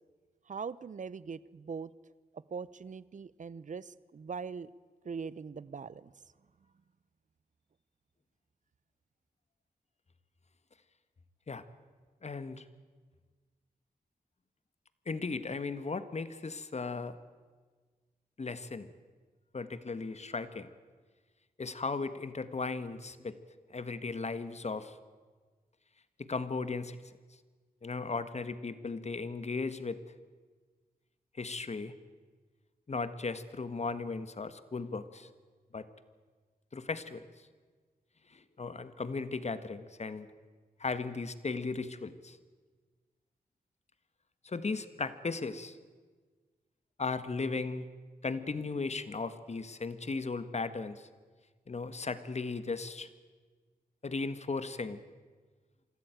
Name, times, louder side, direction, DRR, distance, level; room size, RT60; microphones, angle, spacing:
voice 1, 0.5-1.9 2.3-4.7 5.0-6.1, right 5 dB, 55° right, 19 dB, 0.7 m, -41 dB
voice 2, 12.2-12.6 15.1-17.2 18.4-18.9 19.5-20.7 21.6-23.4 23.7-25.0 26.3-27.0 27.8-30.0 31.3-31.9 32.9-35.3 35.7-35.9 36.7-37.2 38.3-40.3 40.8-42.4 44.4-45.8 47.0-47.9 48.2-51.1 51.7-53.1 54.0-55.0, left 4 dB, 45° left, 13 dB, 1.5 m, -36 dB
25.0 x 13.5 x 9.1 m, 1.4 s
cardioid pair, 55°, 15 cm